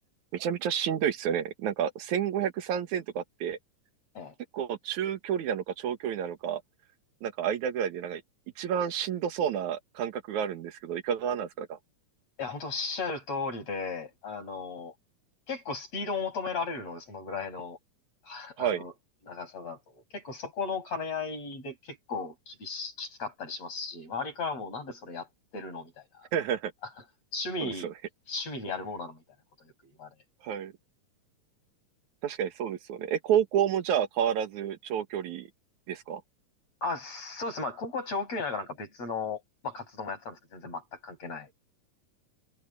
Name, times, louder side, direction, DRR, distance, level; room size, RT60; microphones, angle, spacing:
voice 1, 0.3-3.6 4.5-6.6 7.2-8.2 8.6-11.8 18.6-18.8 26.3-26.7 27.6-27.9 30.4-30.7 32.2-35.5 35.9-36.2, right 9 dB, 65° right, 2.8 m, -30 dB
voice 2, 12.4-14.9 15.5-17.8 18.3-18.9 19.3-25.3 25.5-26.0 27.3-27.9 28.3-29.2 29.8-30.1 36.8-41.5, left 4 dB, 50° left, 7.2 m, -35 dB
omnidirectional pair, 3.8 m